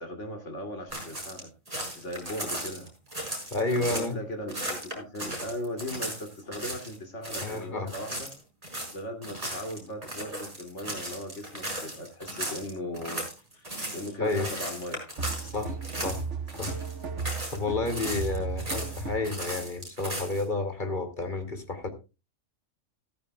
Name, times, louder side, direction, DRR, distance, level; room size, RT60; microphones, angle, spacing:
voice 1, 0.0-1.5 1.9-3.2 3.7-8.3 8.9-13.3 13.5-13.7 13.9-15.0 15.4-15.5, left 1 dB, 70° left, 5 dB, 3.0 m, -38 dB
sound 1, 0.9-4.1 4.5-7.0 7.2-7.6 7.9-16.2 16.5-17.6 17.8-20.4, right 1 dB, 30° right, 5.1 m, -36 dB
voice 2, 3.5-4.2 7.4-7.9 14.2-14.5 15.4-15.8 16.0-16.2 16.6-16.7 17.5-21.9, left 3 dB, 40° left, 6 dB, 2.7 m, -30 dB
sound 2, 15.2-19.4, right 4 dB, 70° right, 1.8 m, -35 dB
14.5 x 14.0 x 2.3 m, 0.28 s
omnidirectional pair, 1.3 m